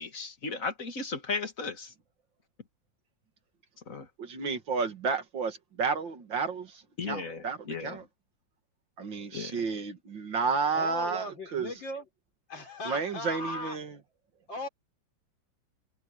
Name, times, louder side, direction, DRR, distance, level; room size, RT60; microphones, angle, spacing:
voice 1, 0.0-1.9 3.9-4.1 7.0-8.0 9.3-9.7, left 4 dB, 45° left, 2.3 m, -36 dB
voice 2, 4.2-7.6 7.8-8.0 9.0-11.3 11.5-11.7 12.8-14.0, right 5 dB, 80° right, 2.7 m, -31 dB
voice 3, 10.7-12.1 12.5-13.8 14.5-14.7, left 2 dB, 80° left, 4.9 m, -37 dB
omnidirectional pair, 2.0 m